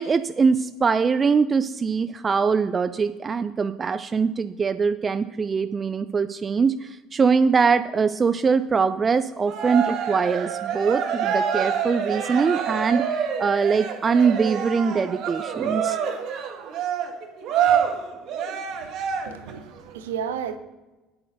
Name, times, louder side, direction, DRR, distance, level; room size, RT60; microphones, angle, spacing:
voice 1, 0.0-16.0, right 5 dB, 30° right, 12 dB, 0.5 m, -22 dB
Cheering, 9.5-19.5, right 7 dB, 55° right, 1.7 m, -26 dB
voice 2, 18.7-20.6, right 8 dB, 70° right, 10 dB, 0.9 m, -34 dB
8.8 x 7.8 x 6.5 m, 1.1 s
figure-of-eight pair, 60°, 0 cm